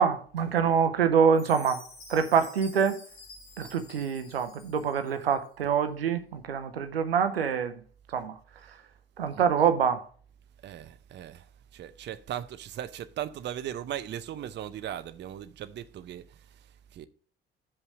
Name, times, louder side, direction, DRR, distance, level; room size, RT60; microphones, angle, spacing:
voice 1, 0.0-1.8 2.1-3.0 3.6-7.8 8.1-8.4 8.7-8.8 9.2-10.0, right 7 dB, 80° right, 0.8 m, -25 dB
Chime, 1.3-5.3, left 3 dB, 75° left, 3.5 m, -49 dB
voice 2, 10.6-17.1, right 11 dB, 35° right, 0.6 m, -38 dB
7.0 x 5.5 x 6.3 m
figure-of-eight pair, 55°, 29 cm